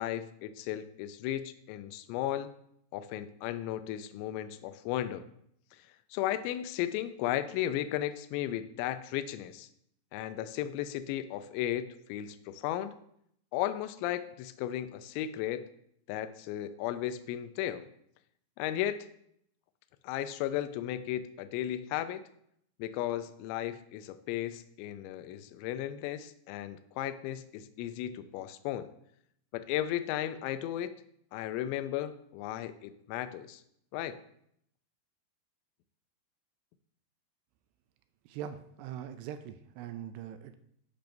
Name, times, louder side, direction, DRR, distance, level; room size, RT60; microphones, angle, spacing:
voice 1, 0.0-2.5 2.9-5.3 5.7-5.8 6.1-9.7 10.1-13.0 13.5-15.7 16.1-17.9 18.6-19.1 20.0-22.2 22.8-28.9 29.5-30.9 31.3-33.6 33.9-34.2, left 12 dB, 85° left, 11 dB, 2.8 m, -35 dB
voice 2, 38.3-40.6, right 9 dB, 85° right, 9 dB, 2.4 m, -42 dB
13.5 x 5.8 x 2.6 m, 0.71 s
omnidirectional pair, 5.2 m